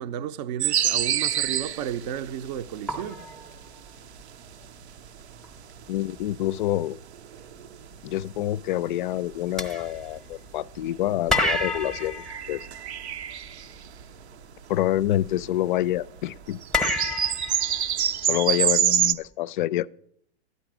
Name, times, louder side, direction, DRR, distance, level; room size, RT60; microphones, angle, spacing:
voice 1, 0.0-3.2, right 10 dB, 40° right, 0.5 m, -33 dB
sound 1, 0.6-15.5 15.9-16.0 16.2-19.1, right 9 dB, 90° right, 0.8 m, -28 dB
sound 2, 1.9-2.0 2.9-4.2 5.4-5.5 6.0-6.2 9.6-10.8 11.3-13.4 16.7-18.5, left 2 dB, ahead, 0.8 m, -30 dB
voice 2, 5.9-7.0 8.0-12.7 14.7-16.6 18.2-19.9, left 13 dB, 50° left, 0.4 m, -27 dB
11.5 x 9.4 x 6.0 m
hypercardioid pair, 140°, 32 cm